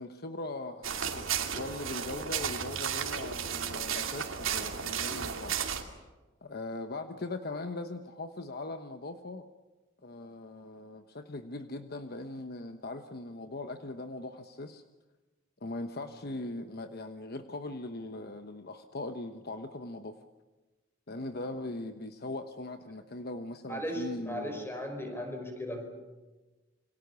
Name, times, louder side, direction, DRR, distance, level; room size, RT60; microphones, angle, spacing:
voice 1, 0.0-5.6 6.4-9.5 10.0-14.8 15.6-20.2 21.1-24.7, left 2 dB, 50° left, 7 dB, 1.1 m, -40 dB
sound 1, 0.8-5.8, right 7 dB, 85° right, 2.7 m, -34 dB
voice 2, 23.7-25.9, equal, 10° left, 5 dB, 5.2 m, -36 dB
28.0 x 24.5 x 7.0 m, 1.2 s
head